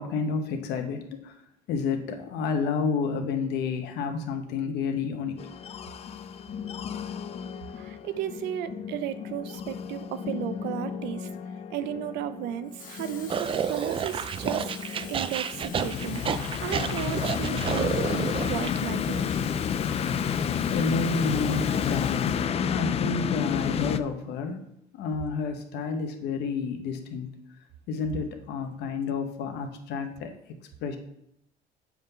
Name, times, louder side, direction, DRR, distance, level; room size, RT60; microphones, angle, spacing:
voice 1, 0.0-1.3 1.7-5.4 20.7-24.6 24.9-27.3 27.9-30.3 30.8-31.0, left 5 dB, 80° left, 5 dB, 1.0 m, -30 dB
sound 1, 5.4-24.0, left 7 dB, 35° left, 0.4 m, -31 dB
voice 2, 7.8-11.3 11.7-14.6 15.1-19.2, right 11 dB, 90° right, 12 dB, 0.6 m, -34 dB
Water tap faucet / Fill (with liquid), 12.6-22.6 22.9-23.2, left 5 dB, 55° left, 1.4 m, -46 dB
sound 2, 13.3-18.7, right 7 dB, 30° right, 0.3 m, -30 dB
7.5 x 3.6 x 5.5 m, 0.77 s
cardioid pair, 110°, 17 cm